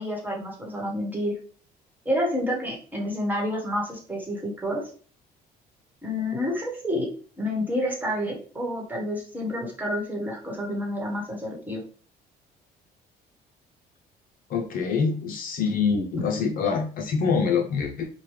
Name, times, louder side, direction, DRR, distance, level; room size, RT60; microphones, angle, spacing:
voice 1, 0.0-1.3 2.0-4.9 6.0-7.1 7.4-11.8, left 1 dB, 10° right, -2 dB, 1.2 m, -29 dB
voice 2, 14.5-18.1, left 5 dB, 55° left, 3 dB, 0.6 m, -25 dB
3.0 x 2.2 x 3.2 m, 0.41 s
cardioid pair, 110°, 17 cm